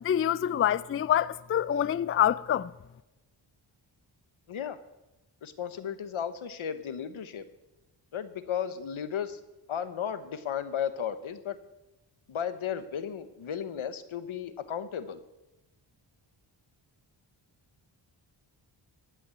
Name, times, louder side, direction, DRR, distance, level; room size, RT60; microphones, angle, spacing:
voice 1, 0.0-2.7, left 10 dB, 30° left, 0.3 m, -26 dB
voice 2, 5.4-7.4 8.1-9.4 9.7-11.6 12.3-15.2, left 8 dB, 80° left, 1.1 m, -34 dB
14.5 x 6.2 x 9.5 m
cardioid pair, 70°, 48 cm